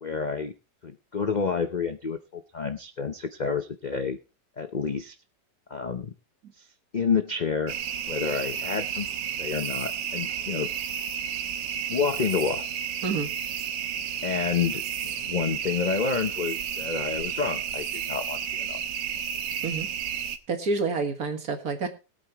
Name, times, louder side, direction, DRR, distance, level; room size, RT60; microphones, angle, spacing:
voice 1, 0.0-0.5 0.8-4.2 4.6-5.2 5.7-6.1 6.6-6.7 6.9-7.8 8.1-9.1 9.4-10.7 11.9-12.6 14.2-18.8, left 5 dB, 60° left, 9 dB, 0.4 m, -29 dB
sound 1, 7.7-20.4, right 8 dB, 80° right, 1.6 m, -32 dB
voice 2, 20.5-21.9, right 4 dB, 55° right, 6 dB, 2.0 m, -28 dB
20.5 x 8.6 x 2.9 m, 0.30 s
omnidirectional pair, 1.9 m